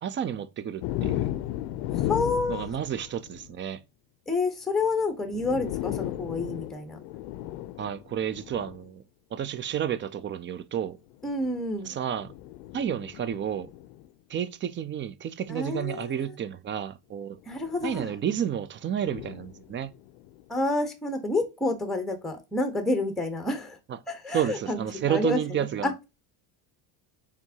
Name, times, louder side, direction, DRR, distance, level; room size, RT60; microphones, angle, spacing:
voice 1, 0.0-1.3 2.5-3.8 7.8-9.0 9.3-11.0 11.8-12.3 12.7-13.7 14.3-17.4 17.8-19.9 23.9-24.0 24.3-25.9, right 9 dB, 30° right, 0.3 m, -31 dB
sound 1, 0.8-3.5 4.8-4.9 5.2-8.8 9.7-10.0 11.1-14.1 15.6-15.7 17.4-18.2 19.0-20.4, left 13 dB, 75° left, 0.5 m, -35 dB
voice 2, 2.1-2.7 4.3-7.0 11.2-11.9 15.5-16.3 17.5-18.1 20.5-23.8 24.1-26.0, left 2 dB, ahead, 1.0 m, -29 dB
4.5 x 3.5 x 2.7 m
supercardioid pair, 85°, 47 cm